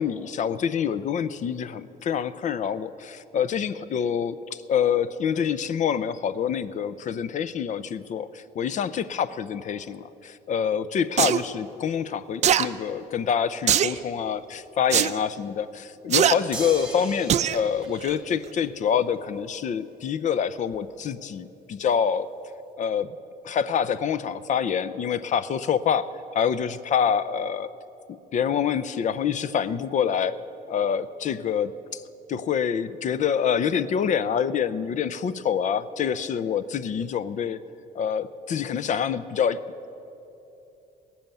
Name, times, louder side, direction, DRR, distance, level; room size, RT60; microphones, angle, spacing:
voice 1, 0.0-22.3 22.8-23.2 23.4-27.7 28.1-30.4 30.7-32.0 32.3-37.6 37.9-39.6, left 7 dB, 45° left, 16 dB, 0.6 m, -26 dB
sound 1, 11.2-11.4 12.4-12.7 13.7-14.0 14.9-15.1 16.1-16.4 17.3-17.6 18.0-18.1, right 10 dB, 45° right, 0.5 m, -20 dB
sound 2, 16.5-19.0 20.7-20.8, right 1 dB, 5° right, 2.3 m, -38 dB
18.0 x 7.1 x 9.1 m, 2.9 s
cardioid pair, 110°, 17 cm